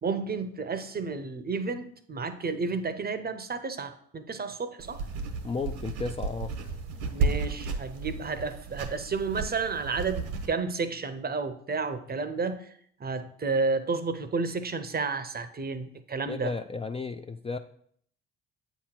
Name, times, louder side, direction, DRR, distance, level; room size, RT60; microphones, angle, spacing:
voice 1, 0.0-5.1 7.1-12.7 13.0-16.5, right 4 dB, 30° right, 0.7 m, -31 dB
sound 1, 4.8-10.5, right 4 dB, 70° right, 1.1 m, -33 dB
voice 2, 5.4-6.5 16.3-17.6, left 4 dB, 20° left, 0.4 m, -33 dB
8.1 x 3.0 x 5.8 m
hypercardioid pair, 55°, 33 cm